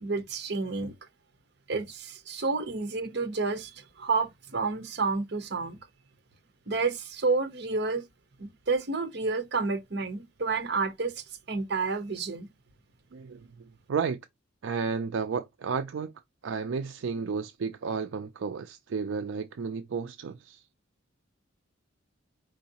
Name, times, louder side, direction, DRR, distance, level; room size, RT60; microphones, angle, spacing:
voice 1, 0.0-0.9 1.7-5.9 6.7-8.0 8.4-12.5, right 4 dB, 55° right, 0.9 m, -30 dB
voice 2, 13.1-13.5 13.9-14.2 14.6-16.1 16.4-20.6, right 5 dB, 70° right, 0.4 m, -32 dB
4.7 x 3.9 x 2.8 m
head